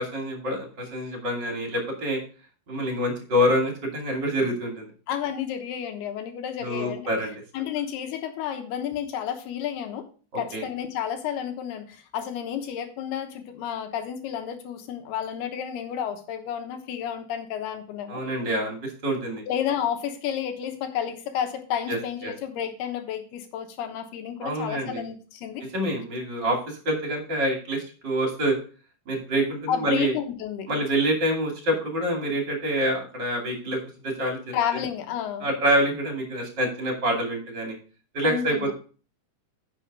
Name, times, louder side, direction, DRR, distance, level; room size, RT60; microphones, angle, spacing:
voice 1, 0.0-2.2 2.7-4.9 6.6-7.3 10.5-10.6 18.1-19.4 21.9-22.0 22.2-22.3 24.4-25.0 25.7-28.5 29.1-30.1 30.7-34.5 35.4-37.7 38.1-38.7, equal, 30° right, 1 dB, 2.6 m, -26 dB
voice 2, 5.1-7.1 7.5-10.0 10.4-18.2 19.5-25.6 29.7-30.8 34.5-35.5 38.2-38.7, left 9 dB, 75° left, 6 dB, 3.1 m, -31 dB
9.9 x 6.3 x 4.9 m, 0.39 s
omnidirectional pair, 4.8 m